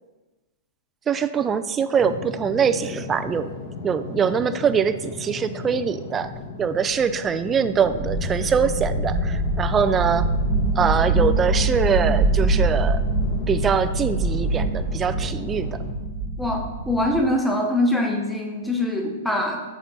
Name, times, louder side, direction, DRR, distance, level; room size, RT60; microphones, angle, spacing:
voice 1, 1.1-3.5 3.8-6.3 6.6-10.3 10.8-13.0 13.5-15.7, right 7 dB, 20° right, 11 dB, 0.3 m, -23 dB
sound 1, 2.0-15.9, left 4 dB, 45° left, 0.9 m, -35 dB
sound 2, 7.0-7.1 7.3-7.4 7.8-17.2, right 2 dB, 55° right, 1.2 m, -24 dB
voice 2, 16.4-19.6, left 1 dB, 5° left, 1 dB, 0.9 m, -23 dB
5.9 x 4.2 x 4.0 m, 1.2 s
figure-of-eight pair, 110°, 0 cm